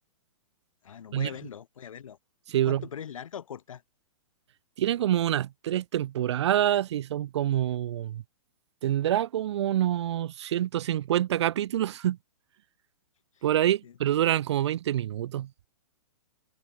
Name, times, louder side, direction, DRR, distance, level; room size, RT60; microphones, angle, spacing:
voice 1, 0.8-2.2 2.7-3.8 13.4-13.5 13.8-13.9, left 8 dB, 75° left, 6.0 m, -41 dB
voice 2, 2.5-2.8 4.8-8.2 8.8-12.2 13.4-15.5, right 12 dB, 55° right, 0.4 m, -26 dB
hypercardioid pair, 165°, 17 cm